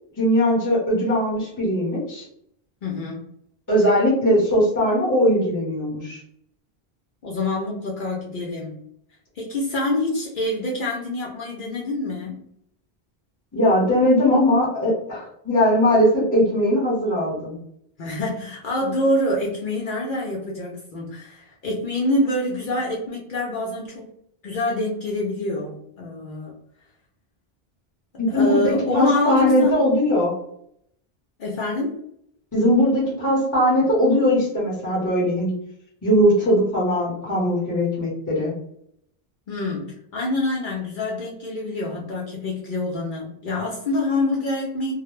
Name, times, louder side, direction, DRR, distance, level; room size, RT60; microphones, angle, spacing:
voice 1, 0.2-2.2 3.7-6.2 13.5-17.6 28.2-30.3 32.5-35.5 36.0-38.5, equal, 20° left, -7 dB, 0.9 m, -20 dB
voice 2, 2.8-3.3 7.2-8.8 9.4-12.4 18.0-24.1 24.4-26.5 28.3-29.8 31.4-32.0 39.5-44.9, left 1 dB, 60° left, -2 dB, 0.7 m, -26 dB
2.3 x 2.0 x 3.0 m, 0.71 s
omnidirectional pair, 1.0 m